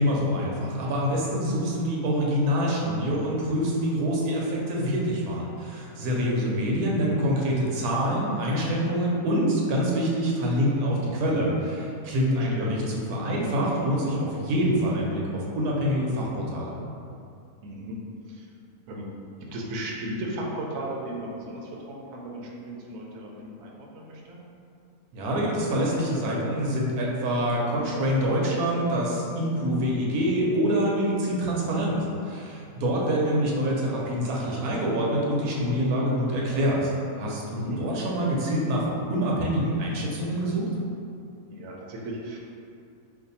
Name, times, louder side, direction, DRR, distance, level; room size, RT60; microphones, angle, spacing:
voice 1, 0.0-16.8 25.1-40.7, equal, 90° right, -3 dB, 1.1 m, -26 dB
voice 2, 17.6-18.0 18.3-18.5 18.9-19.1 19.4-24.4 37.5-37.8 41.5-42.4, right 1 dB, 70° right, -2 dB, 0.9 m, -36 dB
2.6 x 2.5 x 4.0 m, 2.5 s
omnidirectional pair, 1.6 m